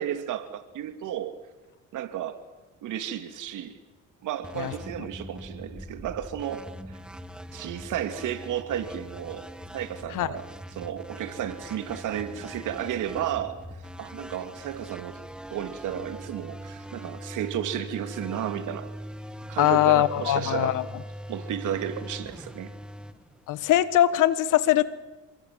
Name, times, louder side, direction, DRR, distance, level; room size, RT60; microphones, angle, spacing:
voice 1, 0.0-1.3 1.9-2.4 2.8-3.8 4.2-7.0 7.5-10.4 10.7-13.6 14.0-15.2 15.5-18.9 19.5-20.8 21.3-22.7, right 10 dB, 85° right, 2.6 m, -33 dB
sound 1, 4.4-24.0, equal, 5° right, 2.0 m, -41 dB
voice 2, 19.6-20.8 23.5-24.9, left 13 dB, 90° left, 1.6 m, -21 dB
28.0 x 23.5 x 7.7 m
cardioid pair, 90°, 30 cm